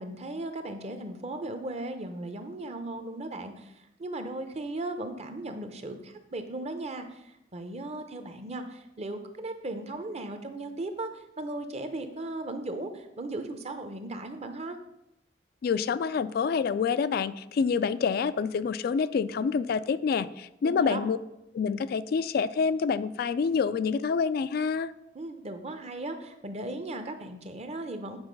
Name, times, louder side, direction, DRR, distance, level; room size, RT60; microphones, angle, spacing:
voice 1, 0.0-14.8 20.6-21.0 25.1-28.2, right 2 dB, 35° right, 7 dB, 0.8 m, -37 dB
voice 2, 15.6-21.2 21.5-24.9, left 5 dB, 55° left, 14 dB, 0.3 m, -27 dB
8.0 x 4.8 x 5.2 m, 0.86 s
head